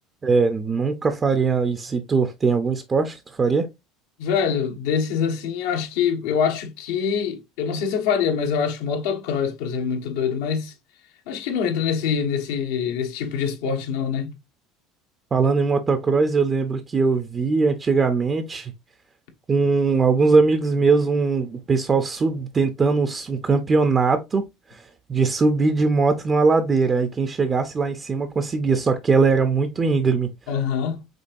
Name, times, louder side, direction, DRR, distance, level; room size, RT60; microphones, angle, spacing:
voice 1, 0.2-3.7 15.3-18.7 19.5-24.4 24.7-30.3, right 4 dB, 20° right, 0.4 m, -21 dB
voice 2, 4.2-10.7 11.3-14.3 30.5-31.1, left 7 dB, 90° left, 1.2 m, -24 dB
5.2 x 3.4 x 2.5 m
cardioid pair, 155°, 0 cm